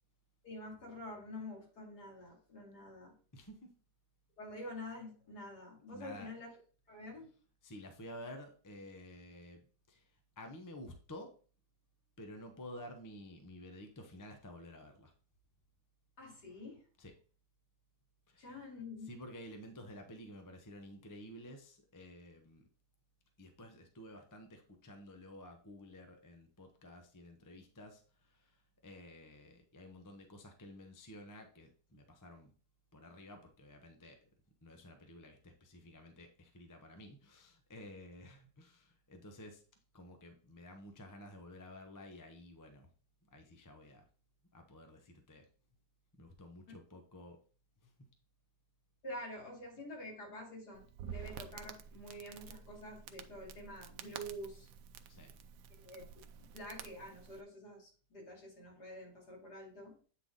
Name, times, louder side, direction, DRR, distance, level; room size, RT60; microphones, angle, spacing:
voice 1, 0.4-3.1 4.4-6.5 6.9-7.3 16.2-16.8 18.4-19.1 49.0-54.7 55.8-56.1 56.4-59.9, left 1 dB, 70° left, -2 dB, 3.0 m, -47 dB
voice 2, 3.3-3.7 5.9-6.3 7.6-9.6 9.9-10.1 10.4-11.3 12.2-15.1 17.0-17.1 18.3-18.6 19.0-22.7 23.4-32.5 32.9-34.3 34.6-39.6 39.9-42.9 43.3-44.0 44.5-45.5 46.1-47.4 47.8-47.9 55.1-55.3, left 1 dB, 20° left, 5 dB, 0.5 m, -52 dB
Crackle, 50.7-57.4, right 8 dB, 85° right, 1.2 m, -50 dB
8.7 x 3.9 x 3.7 m, 0.40 s
omnidirectional pair, 1.8 m